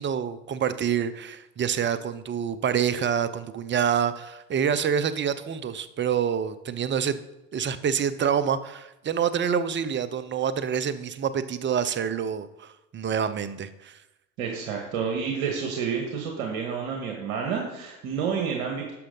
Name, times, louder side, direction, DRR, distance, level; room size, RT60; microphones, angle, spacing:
voice 1, 0.0-7.2 7.5-14.0, right 8 dB, 25° right, 14 dB, 0.7 m, -27 dB
voice 2, 14.4-18.9, right 6 dB, 65° right, 1 dB, 1.7 m, -29 dB
11.5 x 6.4 x 3.9 m, 0.93 s
hypercardioid pair, 75°, 43 cm